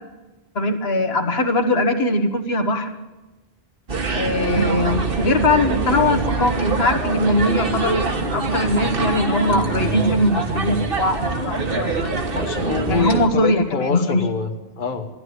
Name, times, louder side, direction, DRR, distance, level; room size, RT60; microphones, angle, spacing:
voice 1, 0.5-3.0 4.1-12.1 12.8-14.2, left 1 dB, 75° left, 6 dB, 1.6 m, -21 dB
sound 1, 3.9-13.3, right 3 dB, 60° right, 1.6 m, -24 dB
voice 2, 12.3-15.1, left 5 dB, 50° left, 5 dB, 1.2 m, -25 dB
14.0 x 11.0 x 9.6 m, 1.1 s
omnidirectional pair, 1.1 m